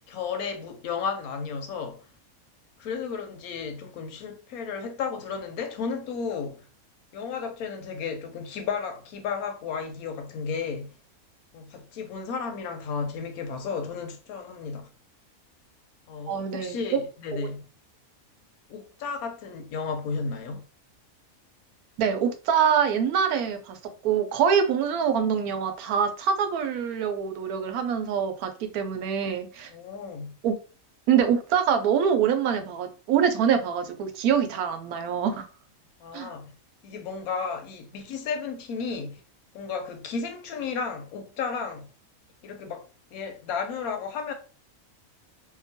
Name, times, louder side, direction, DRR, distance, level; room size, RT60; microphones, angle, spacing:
voice 1, 0.1-2.0 2.8-6.6 7.1-10.9 11.5-14.9 16.1-17.6 18.7-20.6 29.7-30.4 36.0-36.5 36.8-39.2 39.5-41.9 42.4-42.9 43.1-44.3, left 5 dB, 80° left, 1.0 m, -33 dB
voice 2, 16.3-17.0 22.0-23.8 24.0-29.7 30.4-30.6 31.1-35.4 36.1-36.3, right 7 dB, 85° right, 1.1 m, -25 dB
2.9 x 2.2 x 2.6 m
omnidirectional pair, 1.5 m